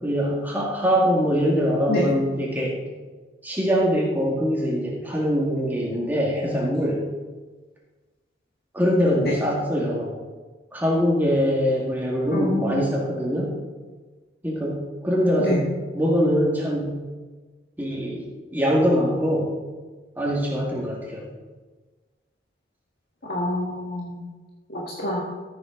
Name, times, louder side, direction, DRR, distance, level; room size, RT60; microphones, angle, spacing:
voice 1, 0.0-2.8 3.4-7.0 8.7-10.1 10.7-13.6 14.4-17.0 17.8-18.2 18.5-19.5 20.2-21.2, equal, 10° right, -4 dB, 2.0 m, -23 dB
voice 2, 12.3-12.8 15.4-15.6 23.3-24.2 24.7-25.2, left 1 dB, 55° left, -4 dB, 1.7 m, -26 dB
14.0 x 7.6 x 3.9 m, 1.3 s
head